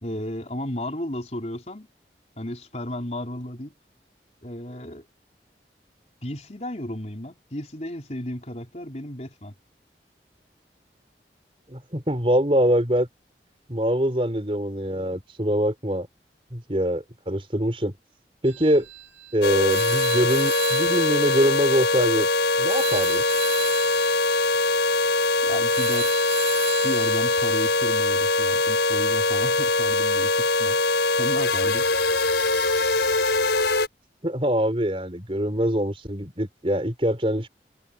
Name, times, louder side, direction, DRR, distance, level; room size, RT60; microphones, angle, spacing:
voice 1, 0.0-1.9 2.4-3.7 4.4-5.0 6.2-9.5 25.4-26.1 26.8-30.8 31.2-31.9, left 1 dB, 40° left, 4.4 m, -33 dB
voice 2, 11.7-13.1 13.7-16.1 16.5-17.9 18.4-18.9 19.3-22.3 22.6-23.2 34.2-37.5, equal, 30° right, 4.5 m, -24 dB
sound 1, 18.5-28.0, right 10 dB, 90° right, 2.9 m, -36 dB
sound 2, 19.4-33.9, left 3 dB, 85° left, 6.0 m, -22 dB
head